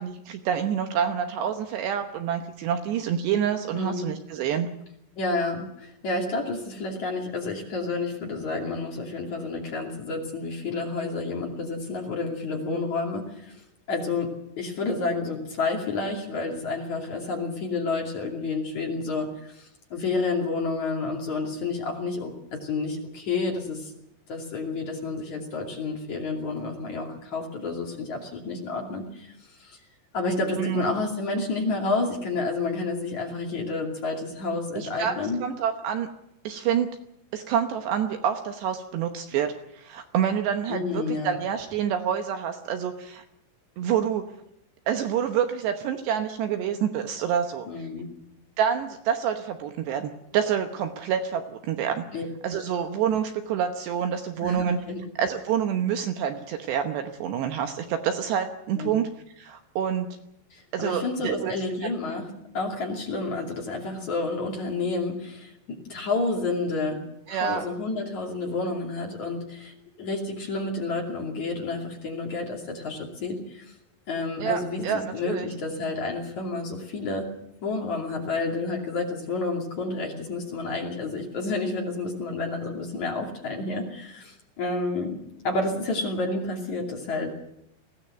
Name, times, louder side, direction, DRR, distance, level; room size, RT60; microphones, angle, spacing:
voice 1, 0.0-4.7 30.6-30.9 34.8-36.1 36.4-36.9 37.3-43.2 43.8-44.3 44.9-47.7 48.6-52.0 52.4-54.8 55.2-59.1 59.4-60.1 60.7-61.5 61.8-61.9 67.3-67.6 74.4-75.5, right 8 dB, 70° right, 6 dB, 2.9 m, -27 dB
voice 2, 3.7-4.1 5.2-13.6 13.9-14.3 14.6-23.9 24.3-29.8 30.1-35.4 40.7-41.4 47.7-48.1 52.1-52.2 54.4-55.0 58.7-58.9 60.5-67.0 67.3-73.7 74.1-77.3 77.6-85.2 85.4-87.3, left 3 dB, 45° left, 0 dB, 3.4 m, -30 dB
21.0 x 16.5 x 8.0 m, 0.78 s
omnidirectional pair, 5.7 m